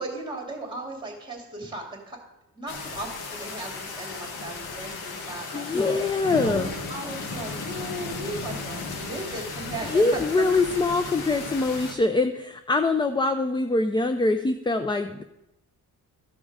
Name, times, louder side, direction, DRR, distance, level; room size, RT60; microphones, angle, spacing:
voice 1, 0.0-2.2 2.5-5.9 6.4-10.3, right 2 dB, 15° right, 0 dB, 2.8 m, -37 dB
sound 1, 2.7-11.9, left 4 dB, 80° left, 1.3 m, -35 dB
voice 2, 5.5-6.7 9.8-15.2, left 3 dB, 15° left, 8 dB, 0.4 m, -24 dB
14.0 x 5.3 x 4.8 m, 0.89 s
cardioid pair, 105°, 37 cm